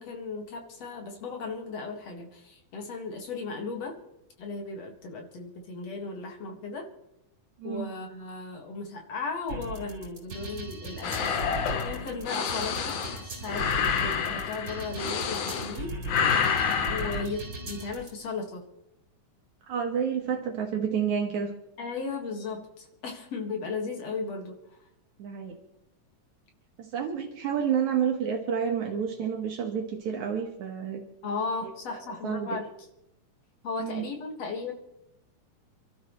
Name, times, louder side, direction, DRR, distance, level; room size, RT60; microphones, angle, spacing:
voice 1, 0.0-4.0 4.4-6.9 7.6-11.4 11.8-16.0 16.9-18.6 21.8-24.6 31.2-32.7 33.6-34.7, left 4 dB, 55° left, 2 dB, 2.9 m, -36 dB
sound 1, 9.5-18.1, right 2 dB, 40° right, 5.0 m, -38 dB
sound 2, 11.0-15.8 16.1-17.2, left 7 dB, 75° left, 2.5 m, -28 dB
voice 2, 19.7-21.5 25.2-25.6 26.8-31.0 31.6-32.6 33.8-34.0, right 7 dB, 70° right, 2 dB, 2.7 m, -30 dB
28.5 x 12.5 x 3.2 m, 0.86 s
omnidirectional pair, 3.5 m